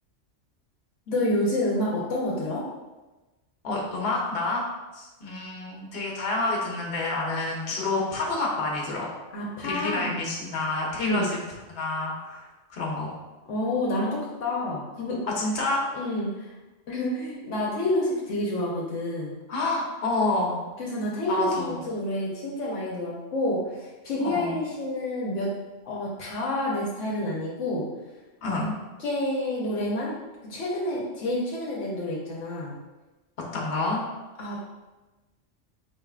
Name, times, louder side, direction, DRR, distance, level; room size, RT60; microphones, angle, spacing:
voice 1, 1.1-2.6 9.3-10.2 11.0-11.3 13.5-15.2 15.9-16.5 16.9-19.3 20.8-21.5 21.9-25.5 25.8-27.9 29.0-30.2 30.5-32.7 34.4-34.6, left 1 dB, 75° left, -4 dB, 1.0 m, -28 dB
voice 2, 3.6-4.6 4.9-9.1 9.6-11.4 11.7-13.1 15.2-15.9 19.5-20.6 21.3-21.9 24.2-24.5 28.4-28.7 33.5-34.0, left 2 dB, 55° left, -2 dB, 1.0 m, -28 dB
4.7 x 3.4 x 2.3 m, 1.1 s
omnidirectional pair, 1.3 m